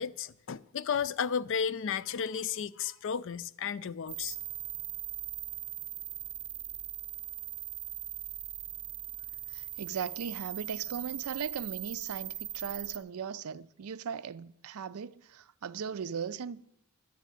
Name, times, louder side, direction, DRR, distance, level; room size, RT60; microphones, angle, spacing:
voice 1, 0.0-4.4, left 7 dB, 60° left, 0.4 m, -33 dB
sound 1, 4.1-13.0, right 11 dB, 25° right, 0.6 m, -40 dB
voice 2, 9.5-16.7, right 7 dB, 75° right, 0.4 m, -38 dB
11.0 x 7.4 x 9.1 m
head